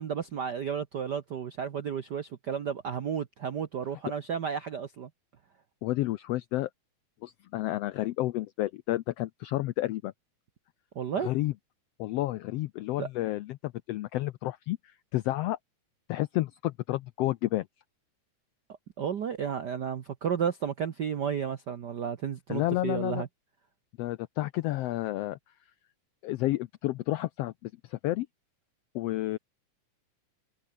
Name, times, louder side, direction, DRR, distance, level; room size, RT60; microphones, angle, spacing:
voice 1, 0.0-5.1 10.9-11.3 13.0-13.1 19.0-23.3, right 7 dB, 70° right, 1.0 m, -32 dB
voice 2, 5.8-6.7 7.2-10.1 11.2-11.5 12.0-15.6 16.1-17.7 22.5-23.2 24.0-25.4 26.2-28.3 28.9-29.4, left 16 dB, 85° left, 1.4 m, -31 dB
omnidirectional pair, 3.5 m